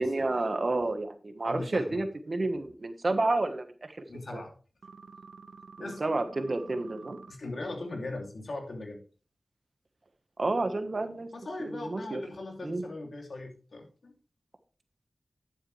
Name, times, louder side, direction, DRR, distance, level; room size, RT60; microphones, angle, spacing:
voice 1, 0.0-4.0 4.3-4.4 5.8-7.2 10.4-11.3 11.6-12.2 12.6-12.8, right 2 dB, 55° right, 9 dB, 1.3 m, -30 dB
voice 2, 1.4-2.0 4.1-4.5 5.8-6.0 7.3-9.0 11.3-14.1, left 2 dB, 75° left, 2 dB, 2.7 m, -39 dB
sound 1, 4.8-7.3, right 4 dB, 90° right, 0.8 m, -50 dB
10.5 x 8.6 x 3.3 m, 0.37 s
cardioid pair, 45°, 0 cm